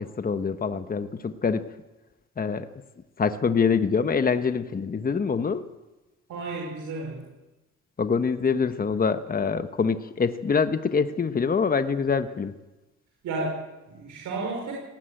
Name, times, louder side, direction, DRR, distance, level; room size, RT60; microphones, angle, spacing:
voice 1, 0.0-1.7 2.4-2.7 3.2-5.6 8.0-12.5, left 5 dB, 30° left, 10 dB, 1.1 m, -25 dB
voice 2, 6.3-7.2 13.2-14.7, right 3 dB, 80° right, -1 dB, 5.4 m, -32 dB
18.0 x 17.5 x 9.1 m, 1.1 s
cardioid pair, 90°, 30 cm